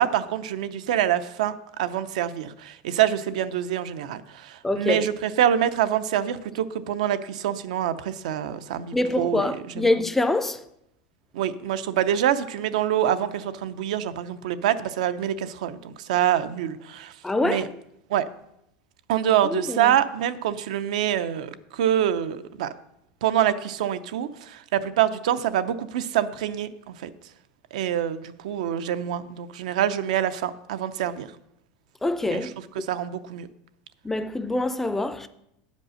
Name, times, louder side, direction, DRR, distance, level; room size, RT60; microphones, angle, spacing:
voice 1, 0.0-9.9 11.3-17.1 17.4-17.7 18.1-18.2 19.1-22.7 23.2-27.1 27.7-28.2 28.4-31.3 32.3-32.5 32.7-33.5, right 10 dB, 85° right, 0.6 m, -25 dB
voice 2, 4.6-5.1 8.9-10.6 17.2-17.7 19.4-20.0 32.0-32.5 34.0-35.3, left 2 dB, 5° left, 0.4 m, -25 dB
8.5 x 5.3 x 6.3 m
supercardioid pair, 150°, 4 cm